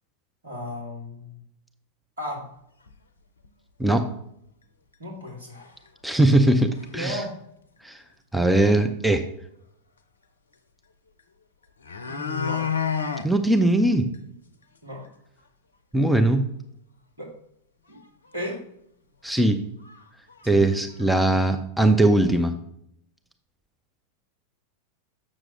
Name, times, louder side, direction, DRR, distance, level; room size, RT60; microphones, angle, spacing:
voice 1, 0.4-1.4 2.2-2.4 5.0-5.7 6.9-7.3 12.1-12.6 14.8-15.0 17.2-17.3 17.9-18.0 18.3-18.6 20.5-20.7, left 1 dB, 75° right, -2 dB, 2.4 m, -34 dB
sound 1, 2.9-3.0 3.4-3.5 3.9-4.0 4.9-5.0 5.6-5.9 6.2-6.3 6.6-7.0 8.4-8.5 8.8-8.9 11.2-11.3 11.6-13.3 13.7-13.8 14.1-14.2 14.6-14.7 15.0-15.1 18.0-18.1 18.4-18.5 19.3-19.4 19.8-20.0 20.3-21.1 21.4-21.5, left 7 dB, 70° left, 0.5 m, -30 dB
voice 2, 6.0-7.2 7.8-8.0 8.3-9.2 13.2-14.1 15.9-16.4 19.2-19.6 20.5-22.5, right 1 dB, 5° right, 6 dB, 0.5 m, -20 dB
7.5 x 6.1 x 3.2 m, 0.72 s
figure-of-eight pair, 90°, 0 cm